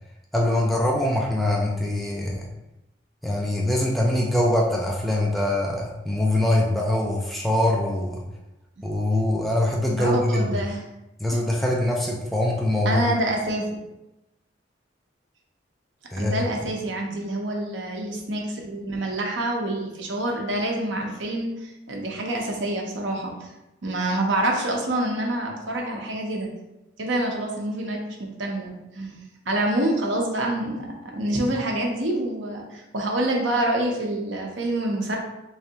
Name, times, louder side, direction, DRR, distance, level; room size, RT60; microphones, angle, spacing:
voice 1, 0.3-2.5 3.2-8.2 8.8-10.5 11.2-13.0 16.1-16.4, left 1 dB, ahead, -3 dB, 0.4 m, -23 dB
voice 2, 10.0-10.8 11.3-11.4 12.8-13.7 16.1-23.5 23.8-26.5 27.0-35.2, right 1 dB, 75° right, 0 dB, 0.8 m, -27 dB
3.5 x 3.2 x 2.8 m, 0.94 s
head